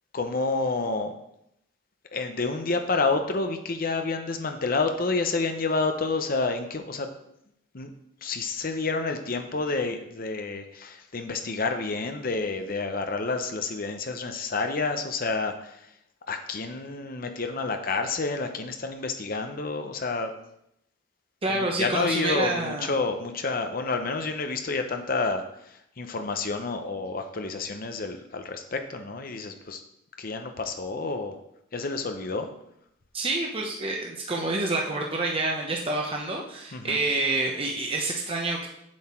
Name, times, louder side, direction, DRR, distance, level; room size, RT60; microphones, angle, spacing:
voice 1, 0.1-1.1 2.1-7.1 7.7-7.9 8.2-15.8 16.3-20.3 21.5-25.4 26.0-29.8 30.2-31.3 31.7-32.5 36.7-37.0, left 3 dB, 50° left, 6 dB, 0.7 m, -29 dB
voice 2, 21.4-22.9 33.1-38.7, right 2 dB, 30° right, -1 dB, 0.9 m, -28 dB
7.9 x 7.5 x 4.4 m, 0.78 s
head